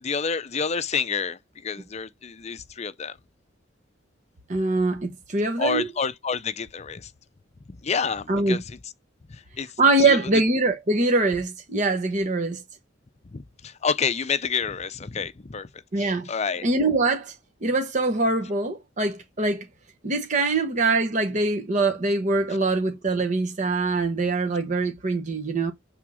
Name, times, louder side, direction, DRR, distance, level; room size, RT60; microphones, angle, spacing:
voice 1, 0.0-3.2 5.6-7.1 7.7-8.8 9.3-9.7 10.0-10.2 13.2-15.7 16.3-16.7, left 6 dB, 35° left, 0.6 m, -29 dB
voice 2, 4.5-5.9 8.3-8.6 9.8-12.6 15.9-16.3 16.6-17.3 17.6-19.7 20.0-25.7, right 3 dB, 40° right, 1.0 m, -23 dB
7.2 x 3.6 x 6.2 m
head